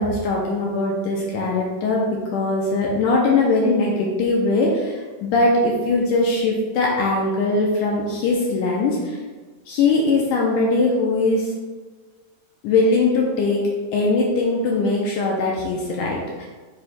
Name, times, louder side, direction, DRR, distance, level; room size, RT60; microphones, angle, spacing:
voice 1, 0.0-9.2 9.7-11.5 12.6-13.6 13.9-16.5, left 3 dB, 75° left, -2 dB, 2.1 m, -21 dB
9.7 x 4.2 x 2.3 m, 1.3 s
omnidirectional pair, 3.9 m